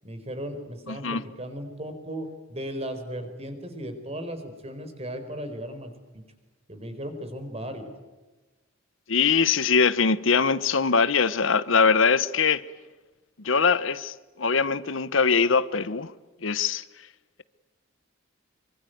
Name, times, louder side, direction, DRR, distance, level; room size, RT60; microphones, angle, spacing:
voice 1, 0.0-6.2 6.7-7.9, equal, 30° right, 4.4 m, -36 dB
voice 2, 0.9-1.2 9.1-12.6 13.4-16.1 16.4-16.8, left 5 dB, 75° left, 1.0 m, -22 dB
25.5 x 24.5 x 9.3 m
head